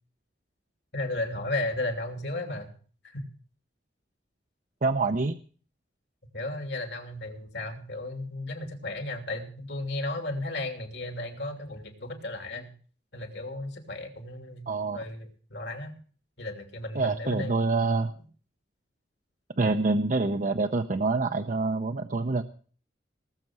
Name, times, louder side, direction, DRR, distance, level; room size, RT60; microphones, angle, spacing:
voice 1, 0.9-2.7 3.0-3.2 6.3-12.7 13.1-14.7 14.9-15.9 16.4-17.9, left 2 dB, 70° left, 3 dB, 2.9 m, -34 dB
voice 2, 4.8-5.4 14.7-15.0 16.9-18.1 19.6-22.4, right 3 dB, 45° right, 7 dB, 0.7 m, -26 dB
19.0 x 7.5 x 6.1 m, 0.43 s
head